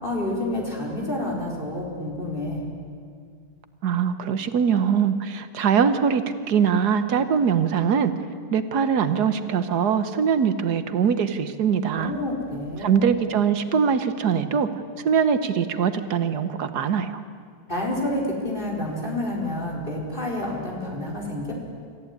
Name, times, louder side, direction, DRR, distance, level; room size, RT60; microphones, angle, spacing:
voice 1, 0.0-2.6 11.9-13.1 17.7-21.5, left 1 dB, 30° left, -2 dB, 4.5 m, -29 dB
voice 2, 3.8-8.1 8.5-12.1 12.8-14.7 15.0-17.2, right 7 dB, 85° right, 11 dB, 1.6 m, -22 dB
25.5 x 14.5 x 9.7 m, 2.1 s
omnidirectional pair, 1.7 m